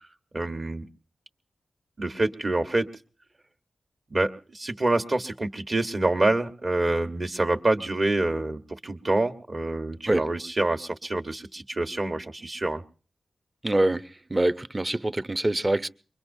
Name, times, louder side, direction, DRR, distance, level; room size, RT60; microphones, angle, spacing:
voice 1, 0.3-0.8 2.0-2.9 4.1-12.8, right 2 dB, 50° right, 1.3 m, -26 dB
voice 2, 13.6-14.0 14.3-15.9, right 1 dB, 30° right, 0.7 m, -24 dB
24.0 x 21.5 x 2.7 m
cardioid pair, 40°, 0 cm